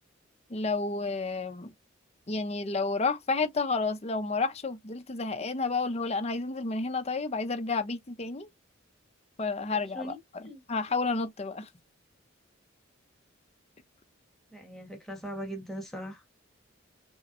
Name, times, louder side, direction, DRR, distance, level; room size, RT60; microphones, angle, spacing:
voice 1, 0.5-1.7 2.3-8.5 9.4-11.7, left 3 dB, 30° left, 0.6 m, -31 dB
voice 2, 14.5-16.2, equal, ahead, 1.2 m, -39 dB
5.5 x 2.0 x 2.5 m
head